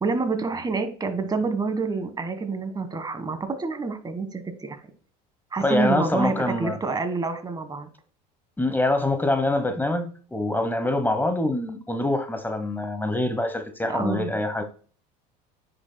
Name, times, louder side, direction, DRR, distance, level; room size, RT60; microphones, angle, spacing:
voice 1, 0.0-4.8 5.5-7.9 13.9-14.4, right 4 dB, 20° right, 8 dB, 1.4 m, -27 dB
voice 2, 5.6-6.8 8.6-14.6, left 2 dB, 10° left, 8 dB, 1.0 m, -25 dB
9.6 x 6.6 x 2.2 m, 0.41 s
supercardioid pair, 100°, 20 cm